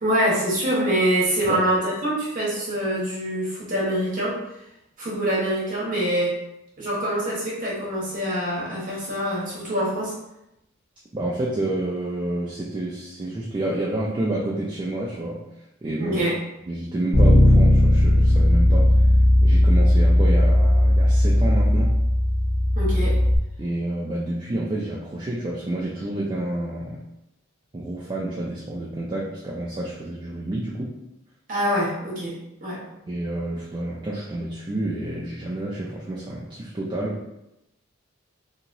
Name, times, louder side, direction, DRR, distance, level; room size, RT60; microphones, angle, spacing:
voice 1, 0.0-4.4 5.0-6.4 6.8-10.1 16.0-16.3 22.7-23.2 31.5-32.3 32.6-32.8, right 1 dB, 40° right, -6 dB, 1.0 m, -25 dB
voice 2, 11.1-15.4 15.8-16.2 16.7-18.9 19.4-22.0 23.6-27.0 27.7-31.0 33.1-37.2, right 1 dB, 20° right, -4 dB, 0.3 m, -29 dB
Bass guitar, 17.1-23.4, left 1 dB, 85° left, 0.8 m, -17 dB
2.9 x 2.8 x 2.6 m, 0.87 s
head